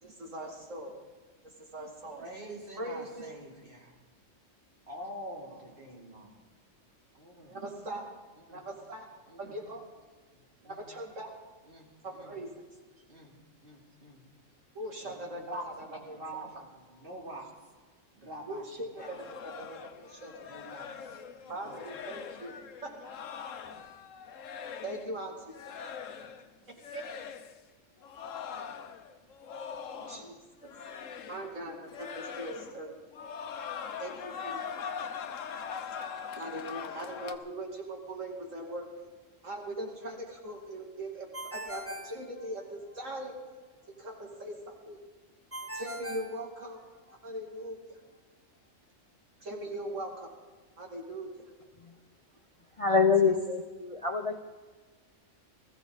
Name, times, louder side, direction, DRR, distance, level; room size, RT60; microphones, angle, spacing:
voice 1, 0.0-0.9 1.4-2.3 2.7-3.3 5.5-5.7 7.5-8.1 8.5-9.1 9.4-9.8 10.6-11.3 12.0-12.5 14.7-16.5 18.5-20.5 21.5-22.5 22.8-22.9 23.6-23.8 24.8-25.6 26.7-27.2 29.9-30.7 31.3-33.0 34.0-34.6 36.3-38.9 39.4-43.3 44.0-45.0 45.6-46.8 47.2-48.0 49.4-50.3 50.8-51.3, right 1 dB, 75° right, 0 dB, 2.9 m, -41 dB
voice 2, 2.2-3.9 4.9-6.5 7.1-7.5 8.5-8.6 9.3-9.5 10.6-10.9 11.7-12.4 13.1-13.3 13.6-14.3 15.0-17.5 18.1-18.6 19.0-19.1 20.4-21.8, right 1 dB, 45° right, -1 dB, 3.2 m, -45 dB
sound 1, 19.0-25.1 25.5-26.5 26.8-27.6 28.0-30.4 30.6-31.6 31.9-32.8 33.1-37.4, left 7 dB, 80° left, 1.2 m, -42 dB
Ringtone, 41.3-43.0 45.5-47.1, equal, 10° right, 1.0 m, -41 dB
voice 3, 52.8-54.4, left 5 dB, 35° left, 5 dB, 0.6 m, -25 dB
20.5 x 14.5 x 4.0 m, 1.4 s
omnidirectional pair, 1.3 m